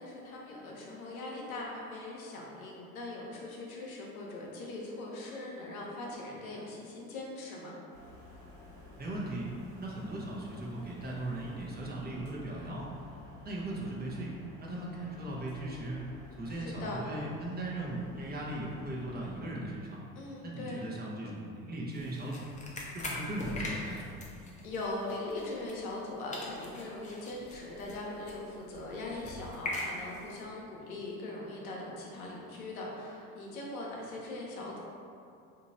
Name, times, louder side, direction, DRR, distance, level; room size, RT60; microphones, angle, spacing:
voice 1, 0.0-7.8 16.5-17.0 20.1-20.8 24.6-34.8, left 2 dB, 80° left, -3 dB, 0.8 m, -40 dB
sound 1, 7.9-19.4, left 2 dB, 85° right, 1.3 m, -53 dB
voice 2, 9.0-9.5 9.8-12.9 13.4-14.3 14.6-16.0 16.4-20.0 20.4-22.6 22.9-24.2, right 1 dB, 25° right, -4 dB, 0.8 m, -38 dB
sound 2, 21.9-26.1 26.3-30.4, left 1 dB, 20° left, 0.7 m, -42 dB
3.0 x 2.7 x 4.0 m, 2.6 s
hypercardioid pair, 70°, 42 cm